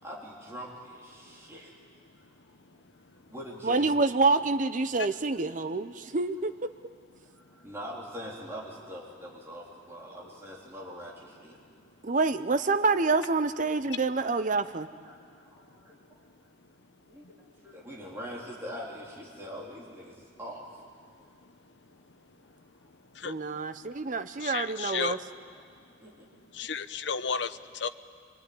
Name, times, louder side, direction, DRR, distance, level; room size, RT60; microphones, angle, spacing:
voice 1, 0.0-1.7 3.3-3.9 6.1-6.2 7.2-11.6 15.0-16.0 16.4-16.5 17.1-17.4 17.6-20.6 25.5-25.7 26.0-26.3, equal, 15° right, -5 dB, 3.8 m, -43 dB
voice 2, 3.6-6.5 12.0-14.9 23.2-25.2, right 3 dB, 45° right, 10 dB, 0.7 m, -27 dB
voice 3, 24.4-25.2 26.6-27.5 27.8-27.9, left 6 dB, 70° left, 11 dB, 0.9 m, -32 dB
25.0 x 24.5 x 9.6 m, 2.2 s
head